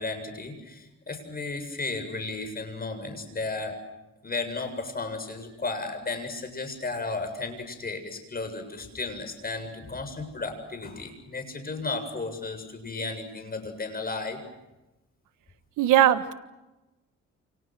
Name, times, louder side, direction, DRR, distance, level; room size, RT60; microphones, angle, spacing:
voice 1, 0.0-3.7 4.2-14.4, left 3 dB, 30° left, 7 dB, 7.5 m, -34 dB
voice 2, 15.8-16.3, right 12 dB, 85° right, 11 dB, 1.6 m, -19 dB
29.5 x 28.5 x 6.3 m, 1.0 s
cardioid pair, 90°, 30 cm